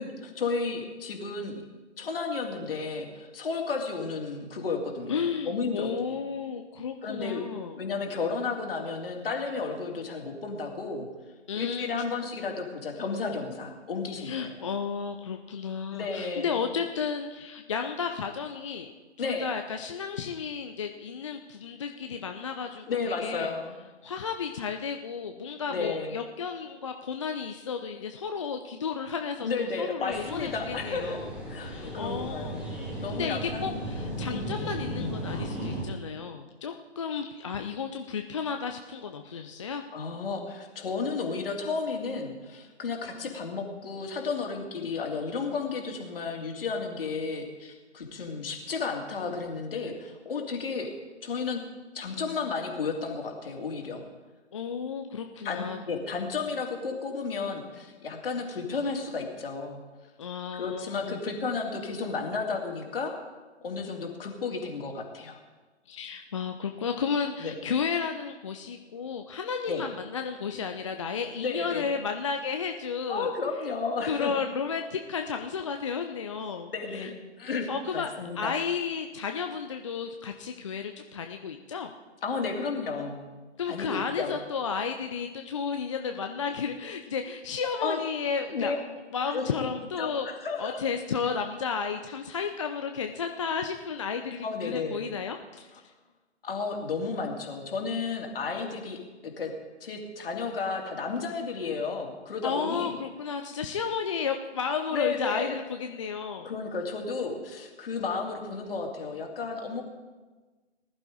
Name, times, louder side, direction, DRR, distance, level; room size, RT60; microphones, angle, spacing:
voice 1, 0.0-1.6 2.0-6.2 7.0-7.4 7.8-11.1 11.5-14.5 15.9-16.7 19.2-19.5 22.9-23.8 25.7-26.2 29.4-31.2 31.5-32.6 33.0-33.7 34.3-34.5 39.9-50.9 51.2-51.6 51.9-54.0 55.4-59.8 60.5-63.1 63.6-65.4 67.4-67.5 69.7-69.8 71.4-71.9 73.1-74.3 76.7-78.5 82.2-83.3 83.7-84.4 87.8-88.0 88.5-88.8 89.3-89.7 90.0-90.8 94.4-95.0 96.4-99.0 99.2-99.5 99.8-103.0 104.9-105.5 106.4-109.8, left 4 dB, 55° left, 2 dB, 2.6 m, -33 dB
voice 2, 5.1-7.8 11.5-11.9 14.2-18.9 19.2-22.8 23.2-23.5 24.0-31.3 31.6-32.6 32.9-39.8 54.5-55.8 60.2-61.2 65.9-73.3 74.0-77.1 77.7-81.9 83.6-88.7 89.1-90.3 90.6-95.7 102.4-106.5, left 6 dB, 25° left, 5 dB, 0.5 m, -33 dB
sound 1, 30.1-35.8, right 1 dB, 5° right, 2.1 m, -35 dB
19.5 x 11.5 x 3.8 m, 1.3 s
figure-of-eight pair, 130°, 35 cm